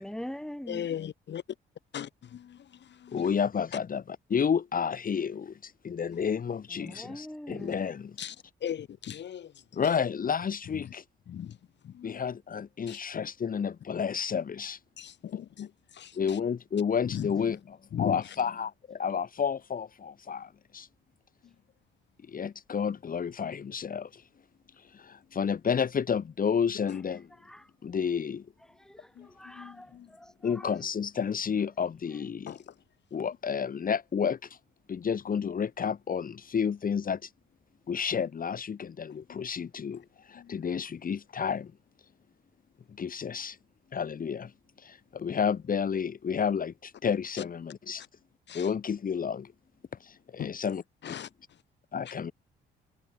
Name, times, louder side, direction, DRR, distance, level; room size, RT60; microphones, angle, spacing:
voice 1, 0.0-0.9 6.7-7.8 27.1-27.7 28.7-30.8, equal, 5° left, 3.6 m, -43 dB
voice 2, 0.7-1.4 1.9-3.2 6.1-6.2 6.8-7.0 7.6-7.8 8.2-8.4 8.6-9.6 10.7-10.9 11.3-11.6 11.8-12.3 12.9-13.0 15.0-16.4 17.0-17.3 17.9-18.4 21.4-21.6 26.9-27.0 29.2-30.1 32.5-32.7 39.1-39.2 39.9-40.0 40.3-40.7 48.5-48.7 50.4-50.6 51.0-51.6, left 9 dB, 60° left, 3.5 m, -39 dB
voice 3, 3.1-8.1 9.7-11.0 12.0-14.8 16.2-17.6 18.0-20.9 22.3-24.2 24.9-27.3 27.8-28.4 30.4-32.5 33.1-34.6 34.9-37.3 37.9-41.7 43.0-43.6 43.9-44.5 44.8-48.0 48.5-49.5 50.0-50.8 51.1-51.2 51.9-52.3, left 7 dB, 45° left, 2.7 m, -31 dB
cardioid pair, 90°, 20 cm